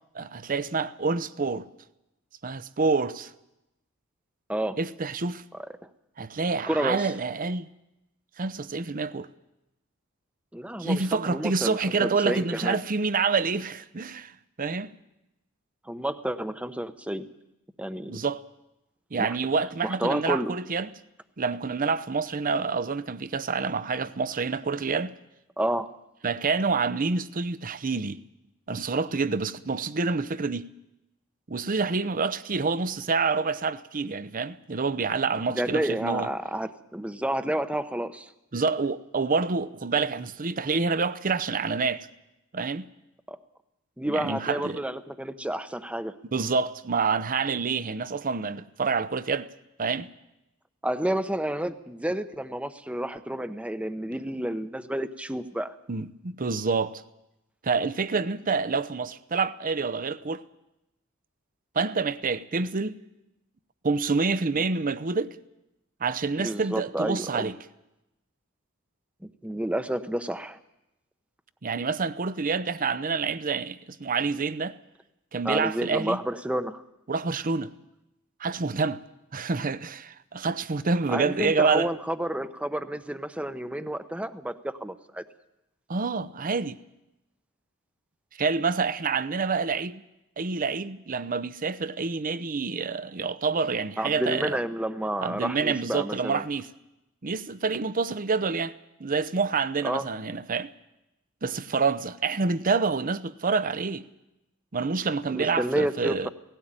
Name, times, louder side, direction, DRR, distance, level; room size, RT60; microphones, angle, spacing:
voice 1, 0.1-1.7 2.4-3.3 4.8-5.4 6.2-7.7 8.4-9.3 10.8-14.9 18.1-18.4 19.1-20.9 21.4-25.1 26.2-28.2 28.7-30.6 31.5-36.3 38.5-42.1 42.5-42.9 44.1-44.8 46.3-49.5 49.8-50.1 55.9-57.0 57.6-60.4 61.7-63.0 63.8-65.4 66.0-67.5 71.6-74.8 75.3-76.2 77.1-77.7 78.4-79.0 79.3-81.9 85.9-86.8 88.4-90.0 90.4-94.6 95.2-96.7 97.2-98.7 99.0-100.7 101.4-104.0 104.7-106.3, right 4 dB, 40° right, 0.7 m, -27 dB
voice 2, 6.7-7.1 10.5-12.8 15.9-17.3 17.8-18.2 19.2-19.4 19.8-20.5 25.6-25.9 35.5-38.3 43.3-43.4 44.0-46.2 50.8-55.7 66.4-67.5 69.2-70.6 75.4-76.8 81.1-85.2 94.0-96.4 99.8-100.1 105.3-106.3, right 1 dB, 5° right, 0.8 m, -30 dB
17.5 x 16.5 x 8.9 m
head